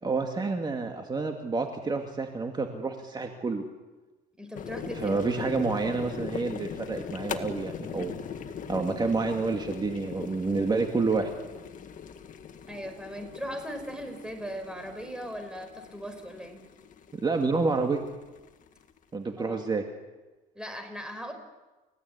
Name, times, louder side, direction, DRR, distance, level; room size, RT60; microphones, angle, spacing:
voice 1, 0.0-3.6 4.9-8.1 8.7-11.3 17.1-18.0 19.1-19.8, right 4 dB, 25° right, 3 dB, 2.3 m, -29 dB
voice 2, 4.4-5.5 12.7-16.6 19.4-19.6 20.6-21.3, equal, 5° right, 6 dB, 5.5 m, -39 dB
sound 1, 4.5-19.0, left 7 dB, 50° left, 1.9 m, -40 dB
30.0 x 17.0 x 9.7 m, 1.2 s
cardioid pair, 110°, 17 cm